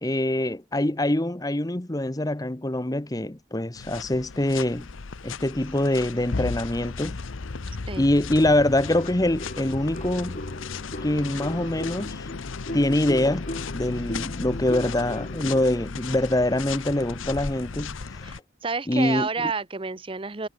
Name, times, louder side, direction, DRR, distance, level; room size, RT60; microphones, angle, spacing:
voice 1, 0.0-4.9 5.2-7.2 8.0-10.4 11.0-12.3 12.7-13.5 13.7-18.3 18.9-19.5, left 1 dB, 20° left, 0.9 m, -24 dB
sound 1, 3.8-18.4, left 4 dB, 85° left, 0.8 m, -35 dB
sound 2, 8.9-15.6, left 1 dB, 40° left, 6.8 m, -38 dB
voice 2, 18.2-20.5, right 4 dB, 25° right, 0.7 m, -30 dB
head